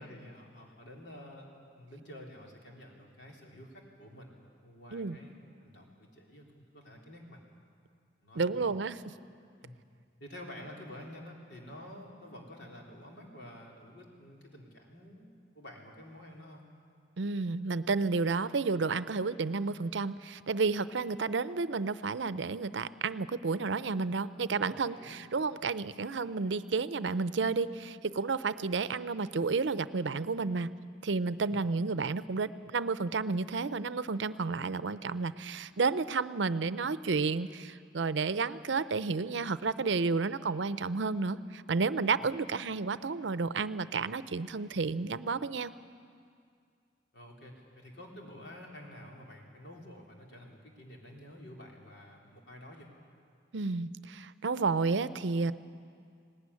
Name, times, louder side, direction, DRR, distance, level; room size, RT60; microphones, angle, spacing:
voice 1, 0.0-4.3 4.6-5.3 5.6-7.4 8.2-8.7 9.6-9.8 10.2-15.3 15.5-16.7 24.6-25.2 31.4-31.6 42.2-42.3 47.1-52.9, left 1 dB, 70° left, -1 dB, 3.8 m, -49 dB
voice 2, 8.4-9.1 17.2-30.7 31.0-45.7 53.5-55.5, right 4 dB, 85° right, 15 dB, 0.6 m, -31 dB
18.5 x 18.5 x 9.8 m, 2.3 s
head